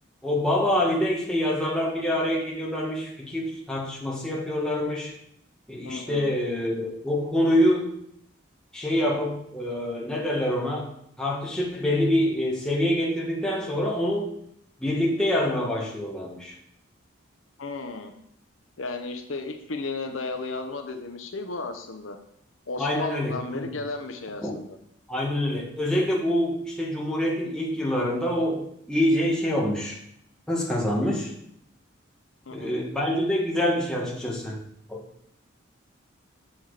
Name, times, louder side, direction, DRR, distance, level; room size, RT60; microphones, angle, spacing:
voice 1, 0.2-5.1 5.7-7.9 8.7-10.9 11.2-14.3 14.8-16.6 22.8-23.7 24.4-24.6 25.1-30.0 30.5-31.3 32.5-34.6 34.9-35.0, left 1 dB, 5° left, -4 dB, 1.7 m, -26 dB
voice 2, 5.8-6.3 17.6-18.1 18.8-22.2 22.7-24.8 32.5-32.8, left 3 dB, 85° left, 5 dB, 0.9 m, -34 dB
7.3 x 6.2 x 5.0 m, 0.71 s
head